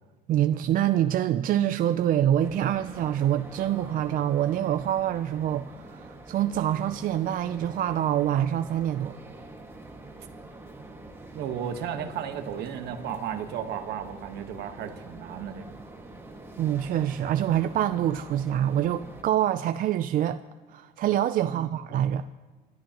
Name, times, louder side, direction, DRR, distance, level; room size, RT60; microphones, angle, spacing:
voice 1, 0.3-9.2 16.6-20.4 20.7-22.3, right 11 dB, 55° right, 0.5 m, -26 dB
sound 1, 2.4-19.2, right 2 dB, 15° right, 1.8 m, -45 dB
voice 2, 11.3-15.8 21.5-21.7, right 8 dB, 75° right, 1.4 m, -34 dB
29.0 x 13.0 x 3.0 m
cardioid pair, 110°, 17 cm